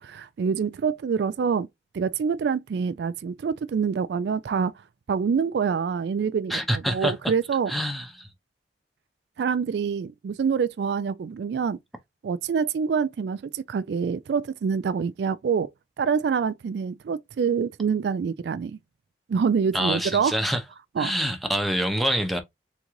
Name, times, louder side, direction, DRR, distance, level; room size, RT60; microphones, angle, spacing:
voice 1, 0.0-1.7 1.9-4.7 5.1-7.7 9.4-11.8 12.2-15.7 16.0-18.8 19.3-20.4 21.0-21.1, right 6 dB, 70° right, 0.3 m, -26 dB
voice 2, 6.5-7.1 7.7-8.3 19.7-20.6 21.0-22.4, equal, ahead, 0.7 m, -26 dB
3.9 x 3.6 x 3.0 m
head